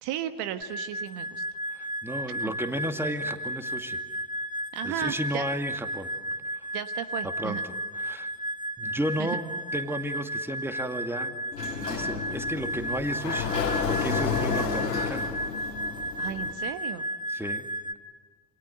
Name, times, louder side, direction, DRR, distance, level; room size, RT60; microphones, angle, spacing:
voice 1, 0.0-1.4 2.4-2.5 4.7-5.5 6.7-7.6 9.2-9.4 16.2-17.0, right 11 dB, 55° right, 10 dB, 1.3 m, -34 dB
sound 1, 0.6-17.9, equal, 15° left, 1.5 m, -34 dB
voice 2, 1.7-4.0 4.8-6.1 6.5-6.7 7.2-7.6 8.0-8.3 8.8-9.5 9.7-11.4 11.8-15.3 17.3-17.7, right 1 dB, 5° right, 6 dB, 2.3 m, -33 dB
Sliding door, 11.5-16.5, left 6 dB, 85° left, 2.5 m, -31 dB
28.5 x 27.0 x 7.8 m, 1.5 s
figure-of-eight pair, 65°, 48 cm